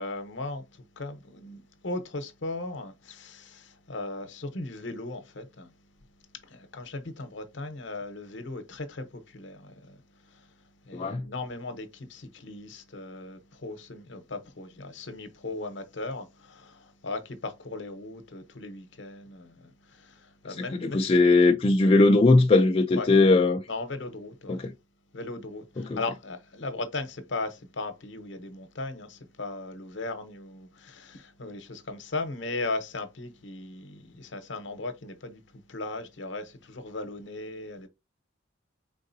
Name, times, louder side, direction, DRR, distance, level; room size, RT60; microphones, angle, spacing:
voice 1, 0.0-5.7 6.3-21.0 22.9-23.1 23.7-24.6 25.1-37.9, left 2 dB, 65° left, 0.8 m, -37 dB
voice 2, 10.9-11.2 20.8-23.6 24.5-24.7 25.8-26.0, left 3 dB, 30° left, 0.3 m, -20 dB
4.7 x 3.7 x 2.6 m
head